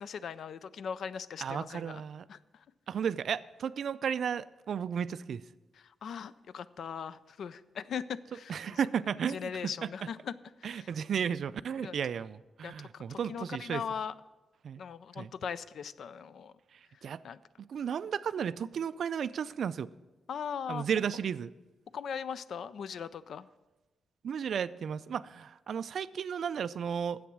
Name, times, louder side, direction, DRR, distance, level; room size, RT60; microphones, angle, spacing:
voice 1, 0.0-2.0 2.3-2.6 6.0-8.8 9.3-10.4 10.6-10.9 11.8-12.0 12.6-14.1 14.8-16.5 17.2-17.4 20.3-20.9 21.9-23.5, left 7 dB, 60° left, 16 dB, 0.4 m, -39 dB
voice 2, 1.4-2.3 2.9-5.4 8.5-9.5 9.8-9.9 10.6-13.8 14.6-14.8 15.2-15.3 16.7-17.2 17.6-19.9 20.7-21.5 24.2-27.2, right 7 dB, 55° right, 15 dB, 0.3 m, -34 dB
10.0 x 7.9 x 6.1 m, 1.1 s
wide cardioid pair, 175°, 0 cm